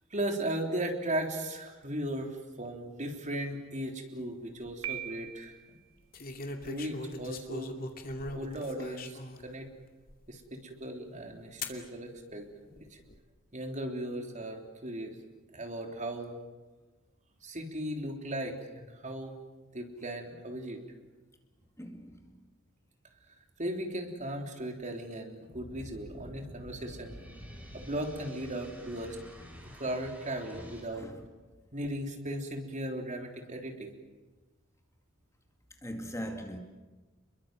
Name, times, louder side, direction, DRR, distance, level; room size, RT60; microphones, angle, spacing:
voice 1, 0.1-5.6 6.6-7.8 8.3-9.7 10.3-12.5 12.7-13.0 13.5-15.1 15.5-16.4 17.4-19.3 19.7-20.8 23.6-27.2 27.7-29.2 29.8-31.1 31.7-33.9, right 1 dB, 35° right, 3.6 m, -37 dB
sound 1, 4.5-4.9 6.1-9.5 10.1-10.2 11.6-11.8 12.7-13.2, left 2 dB, 45° left, 2.6 m, -40 dB
Piano, 4.8-5.8, right 12 dB, 85° right, 1.3 m, -40 dB
voice 2, 21.8-22.4 28.5-29.2 30.9-31.2 35.8-36.6, equal, 15° left, 2.3 m, -42 dB
sound 2, 25.5-30.8, equal, 10° right, 7.7 m, -48 dB
30.0 x 22.5 x 7.7 m
head